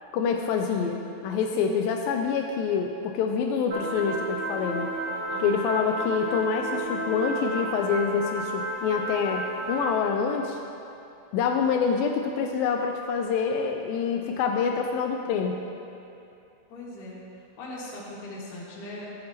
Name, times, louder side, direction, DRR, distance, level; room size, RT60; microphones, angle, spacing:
voice 1, 0.1-4.9 5.4-10.6 11.3-15.6, left 6 dB, 80° left, 3 dB, 2.2 m, -26 dB
sound 1, 3.7-10.0, right 1 dB, 40° right, 2.3 m, -32 dB
voice 2, 5.3-5.7 16.7-17.2 17.6-19.1, left 1 dB, 65° left, -6 dB, 3.2 m, -39 dB
14.0 x 8.5 x 2.9 m, 2.7 s
omnidirectional pair, 4.2 m